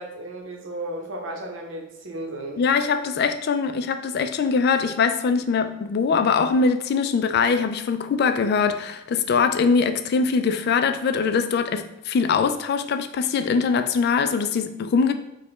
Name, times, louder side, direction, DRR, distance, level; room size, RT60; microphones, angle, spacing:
voice 1, 0.0-2.6, right 1 dB, 75° right, 0.8 m, -34 dB
voice 2, 2.6-15.1, left 5 dB, 55° left, 0.3 m, -22 dB
4.8 x 2.2 x 3.1 m
head